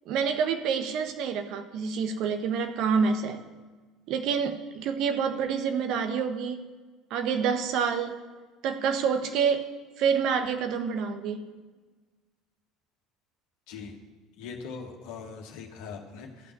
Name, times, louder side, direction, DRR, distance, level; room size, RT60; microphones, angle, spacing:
voice 1, 0.0-3.4 4.1-6.6 7.1-8.2 8.6-9.7 10.0-11.4, right 6 dB, 55° right, 7 dB, 1.3 m, -27 dB
voice 2, 13.7-14.0 14.4-16.5, left 5 dB, 65° left, 1 dB, 1.7 m, -41 dB
13.5 x 6.0 x 8.9 m, 1.4 s
figure-of-eight pair, 65°, 0 cm